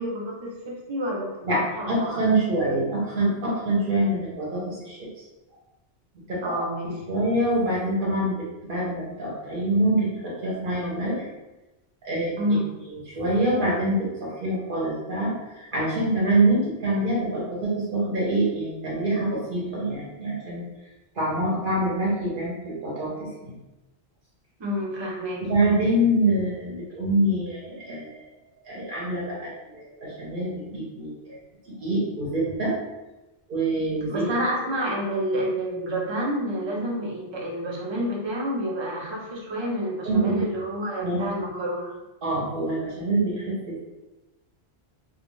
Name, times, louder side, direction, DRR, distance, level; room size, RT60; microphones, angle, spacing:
voice 1, 0.0-2.3 2.6-2.8 6.4-6.9 12.4-12.7 24.6-25.5 34.1-41.9, equal, 35° right, -3 dB, 0.4 m, -29 dB
voice 2, 1.4-5.1 6.3-6.6 7.1-11.3 12.0-12.4 12.9-20.6 21.1-23.5 25.4-28.2 28.6-31.4 31.7-32.8 33.5-34.3 40.0-40.5 41.0-41.2 42.2-43.9, right 1 dB, 55° right, -6 dB, 0.8 m, -25 dB
2.3 x 2.2 x 3.0 m, 1.0 s
omnidirectional pair, 1.1 m